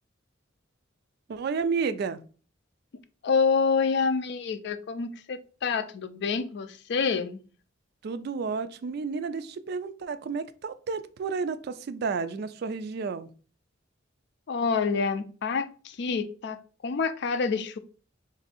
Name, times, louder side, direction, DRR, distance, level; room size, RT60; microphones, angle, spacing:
voice 1, 1.3-2.2 8.0-13.3, right 5 dB, 55° right, 0.3 m, -31 dB
voice 2, 3.2-7.4 14.5-17.8, left 5 dB, 60° left, 0.4 m, -27 dB
3.3 x 2.6 x 3.9 m
head